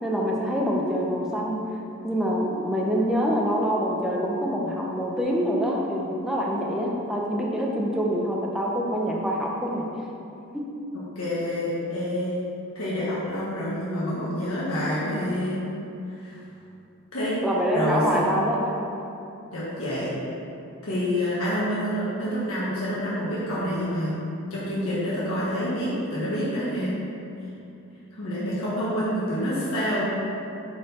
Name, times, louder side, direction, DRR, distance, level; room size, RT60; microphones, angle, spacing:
voice 1, 0.0-9.8 10.5-10.7 17.4-18.8, equal, ahead, -3 dB, 0.6 m, -25 dB
voice 2, 11.1-12.4 12.7-15.6 16.2-16.4 17.1-17.4 17.7-18.2 19.5-20.1 20.8-24.2 24.5-26.9 28.2-30.1, equal, 75° left, -9 dB, 1.3 m, -27 dB
6.1 x 4.0 x 4.2 m, 2.8 s
head